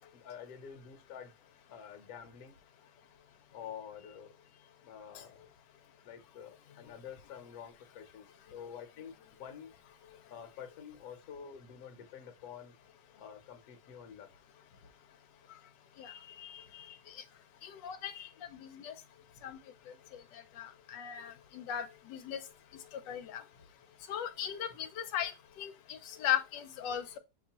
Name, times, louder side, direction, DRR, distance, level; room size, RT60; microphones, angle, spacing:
voice 1, 0.1-1.3 1.7-2.5 3.5-4.3 4.8-5.5 6.0-9.1 9.4-9.7 10.3-12.7 13.1-14.3 14.8-14.9 23.5-23.6, left 8 dB, 65° left, 1.3 m, -48 dB
voice 2, 16.0-16.9 17.6-18.3 18.6-18.9 19.4-19.6 20.6-22.4 23.1-23.4 24.1-25.3 25.6-27.2, left 10 dB, 90° left, 1.3 m, -37 dB
6.2 x 3.0 x 2.8 m
omnidirectional pair, 1.9 m